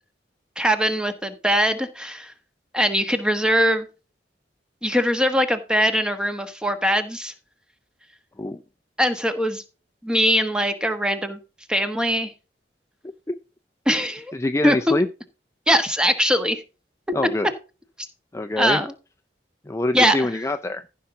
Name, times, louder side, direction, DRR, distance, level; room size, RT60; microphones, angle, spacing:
voice 1, 0.6-2.3 2.7-3.9 4.8-7.3 9.0-9.6 10.0-11.4 11.7-12.3 13.9-14.3 14.6-15.0 15.7-16.6 18.6-18.9 19.9-20.3, equal, 5° right, 8 dB, 1.1 m, -21 dB
voice 2, 14.3-15.1 17.1-17.5 18.3-18.8 19.6-20.8, left 2 dB, 15° left, 8 dB, 0.4 m, -25 dB
14.5 x 5.7 x 3.8 m, 0.33 s
head